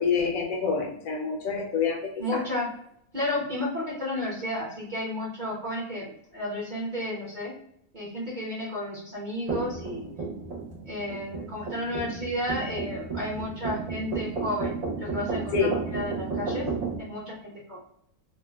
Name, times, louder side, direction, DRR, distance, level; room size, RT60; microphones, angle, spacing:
voice 1, 0.0-2.4 15.5-15.7, left 5 dB, 75° left, 0 dB, 1.0 m, -27 dB
voice 2, 2.2-2.7 3.1-7.5 7.9-10.1 10.8-16.7 17.0-17.8, left 1 dB, 40° right, -6 dB, 0.7 m, -32 dB
sound 1, 9.5-17.0, right 4 dB, 90° right, 0.3 m, -33 dB
3.2 x 2.1 x 2.2 m, 0.72 s
omnidirectional pair, 1.5 m